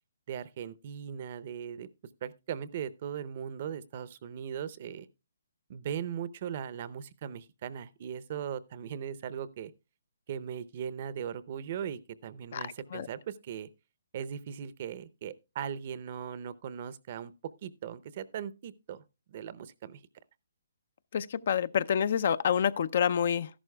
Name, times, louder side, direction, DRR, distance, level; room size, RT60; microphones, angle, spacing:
voice 1, 0.3-1.9 2.2-5.1 5.7-9.7 10.3-13.7 14.1-17.3 17.6-19.0 19.3-20.0, right 8 dB, 45° right, 0.6 m, -39 dB
voice 2, 21.1-23.5, left 8 dB, 55° left, 0.5 m, -27 dB
13.5 x 11.0 x 2.2 m
hypercardioid pair, 150°, 0 cm